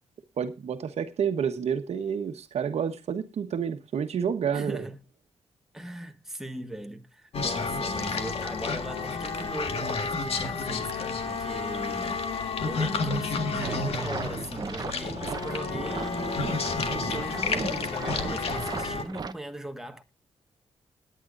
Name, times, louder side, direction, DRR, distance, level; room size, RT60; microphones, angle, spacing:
voice 1, 0.4-4.9, right 7 dB, 75° right, 1.2 m, -29 dB
voice 2, 4.5-5.0 5.7-20.0, right 1 dB, 5° right, 1.5 m, -39 dB
sound 1, 7.3-19.0, left 4 dB, 65° left, 1.8 m, -30 dB
sound 2, 13.6-19.3, right 5 dB, 40° right, 0.8 m, -37 dB
20.0 x 9.7 x 2.6 m
wide cardioid pair, 110°, 11 cm